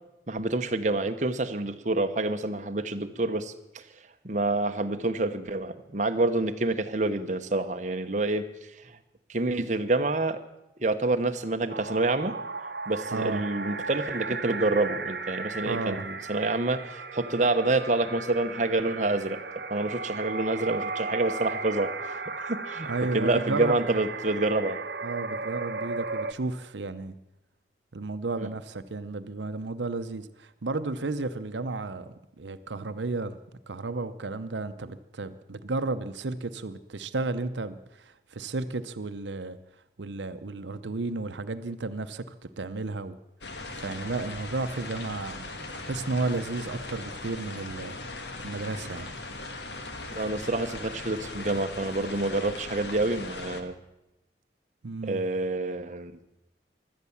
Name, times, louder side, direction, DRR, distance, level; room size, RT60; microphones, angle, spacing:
voice 1, 0.3-3.8 4.2-8.4 9.3-10.4 10.8-12.3 12.9-19.4 19.7-21.9 22.5-24.8 28.4-28.5 50.1-53.7 55.0-56.1, right 2 dB, 40° right, 8 dB, 1.0 m, -27 dB
sound 1, 11.7-26.3, right 3 dB, 65° right, 1.0 m, -36 dB
voice 2, 13.1-13.4 15.6-16.1 22.8-23.9 25.0-27.2 27.9-33.4 33.7-39.6 40.0-43.2 43.7-45.5 45.7-48.0 48.4-49.1 54.8-55.2, right 3 dB, 85° right, 11 dB, 0.8 m, -33 dB
sound 2, 43.4-53.6, left 2 dB, 75° left, 1.7 m, -39 dB
16.5 x 12.0 x 7.2 m, 0.92 s
head